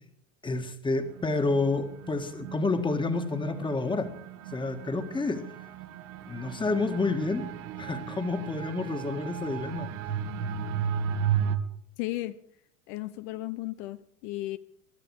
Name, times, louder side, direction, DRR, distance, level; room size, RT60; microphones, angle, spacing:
voice 1, 0.4-4.1 4.5-5.5 6.3-7.5 7.8-9.9, left 3 dB, 15° left, 7 dB, 1.8 m, -29 dB
sound 1, 1.0-11.6, right 8 dB, 70° right, 2.2 m, -35 dB
voice 2, 12.0-12.4 12.9-14.6, left 17 dB, 60° left, 11 dB, 1.0 m, -34 dB
23.0 x 12.0 x 4.8 m, 0.65 s
supercardioid pair, 125°, 38 cm